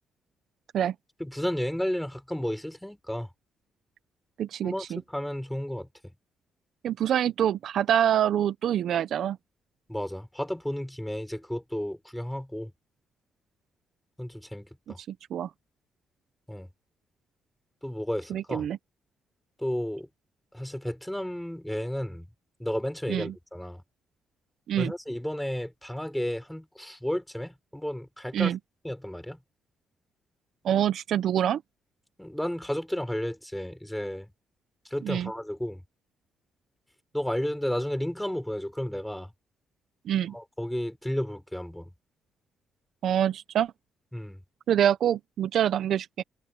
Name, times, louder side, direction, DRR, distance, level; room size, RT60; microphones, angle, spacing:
voice 1, 1.2-3.3 4.6-5.9 9.9-12.7 14.2-15.0 16.5-16.7 17.8-18.7 19.6-20.1 20.5-22.3 22.6-23.8 24.8-28.5 28.8-29.4 32.2-34.3 34.9-35.8 37.1-39.3 40.3-41.9 44.1-44.4, equal, 5° left, 5.5 m, -32 dB
voice 2, 4.4-5.0 6.8-9.4 15.1-15.5 18.3-18.8 23.1-23.3 24.7-24.9 28.3-28.6 30.6-31.6 35.0-35.3 40.1-40.3 43.0-43.7 44.7-46.2, right 10 dB, 70° right, 0.8 m, -26 dB
cardioid pair, 90°, 0 cm